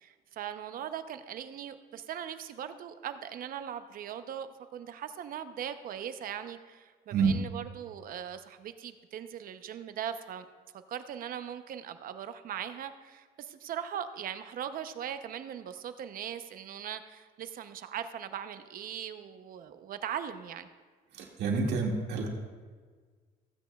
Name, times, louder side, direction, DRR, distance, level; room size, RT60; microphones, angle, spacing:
voice 1, 0.0-10.5 10.9-20.7, right 9 dB, 55° right, 10 dB, 0.7 m, -40 dB
voice 2, 21.1-22.3, right 4 dB, 75° right, 0 dB, 1.9 m, -28 dB
15.5 x 9.0 x 2.3 m, 1.5 s
cardioid pair, 110°, 17 cm